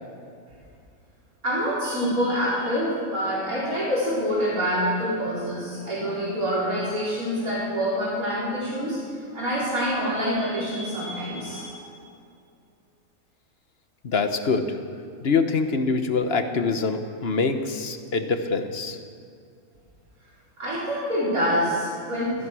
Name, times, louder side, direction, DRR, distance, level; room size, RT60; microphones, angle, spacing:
voice 1, 1.4-11.9 20.6-22.5, equal, 80° right, -8 dB, 4.6 m, -26 dB
voice 2, 14.0-14.8 15.2-19.0, left 4 dB, 50° left, 7 dB, 1.2 m, -24 dB
16.5 x 14.0 x 6.2 m, 2.5 s
omnidirectional pair, 1.5 m